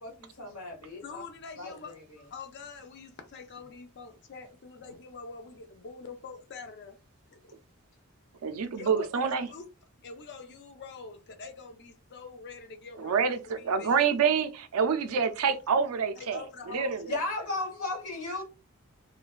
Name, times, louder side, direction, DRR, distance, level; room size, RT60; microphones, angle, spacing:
voice 1, 0.0-1.2 1.6-2.0 17.1-18.4, left 2 dB, 85° left, 1.2 m, -35 dB
voice 2, 1.0-2.0 2.3-7.0 7.3-7.6 8.8-9.7 10.0-14.1 16.2-17.2, left 4 dB, 50° left, 0.4 m, -45 dB
voice 3, 8.4-9.5 13.0-17.1, right 6 dB, 80° right, 0.4 m, -27 dB
3.1 x 2.2 x 2.3 m
head